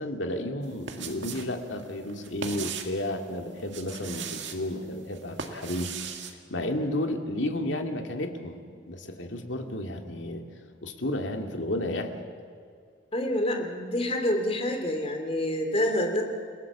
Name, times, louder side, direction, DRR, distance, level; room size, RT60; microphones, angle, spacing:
voice 1, 0.0-10.4 10.8-12.1, left 1 dB, 70° left, 4 dB, 2.4 m, -32 dB
sound 1, 0.6-1.5 1.8-3.0 3.6-4.6 5.1-6.3, right 6 dB, 65° right, 2.0 m, -37 dB
voice 2, 13.1-16.2, left 1 dB, 30° left, 4 dB, 3.0 m, -27 dB
29.5 x 17.5 x 7.3 m, 2.3 s
head